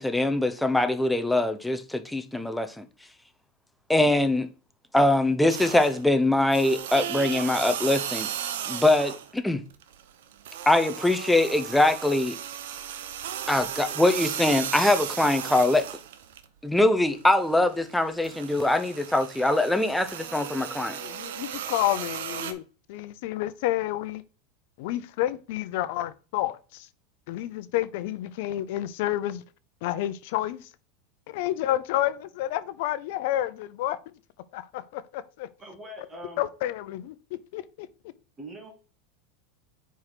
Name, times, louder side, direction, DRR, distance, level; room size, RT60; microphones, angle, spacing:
voice 1, 0.0-2.8 3.9-4.5 4.9-8.3 8.7-9.6 10.7-12.4 13.5-15.9 16.6-21.0, left 2 dB, 5° left, 0.7 m, -23 dB
sound 1, 5.5-6.1 6.5-9.4 9.7-16.5 16.8-22.5, right 9 dB, 80° right, 0.9 m, -35 dB
voice 2, 21.0-22.6 22.9-24.2 24.8-26.9 27.3-29.4 29.8-30.7 31.3-34.2 34.5-35.5 36.4-37.2 37.5-37.9, left 14 dB, 65° left, 0.6 m, -30 dB
voice 3, 35.6-36.4 38.4-38.7, equal, 20° right, 1.8 m, -42 dB
4.8 x 4.6 x 5.8 m
supercardioid pair, 125°, 0 cm